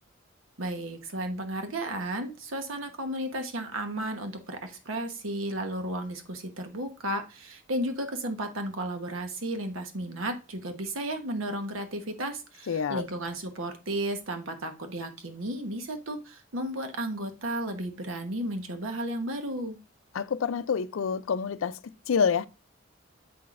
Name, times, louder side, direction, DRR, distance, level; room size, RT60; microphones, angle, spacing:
voice 1, 0.6-19.8, right 1 dB, 85° right, 1.1 m, -33 dB
voice 2, 12.7-13.0 20.1-21.8 22.1-22.5, left 6 dB, 85° left, 0.4 m, -27 dB
7.6 x 5.8 x 2.5 m
head